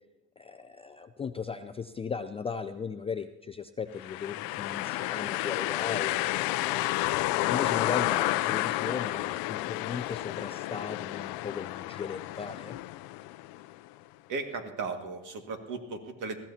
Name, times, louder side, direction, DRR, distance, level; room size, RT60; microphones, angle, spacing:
voice 1, 0.4-6.8 7.4-12.8, left 6 dB, 15° left, 8 dB, 0.4 m, -37 dB
sound 1, 4.0-13.8, left 17 dB, 65° left, 0.6 m, -31 dB
voice 2, 14.3-16.4, right 4 dB, 50° right, 5 dB, 2.0 m, -36 dB
21.0 x 15.0 x 2.8 m, 0.98 s
cardioid pair, 120°, 39 cm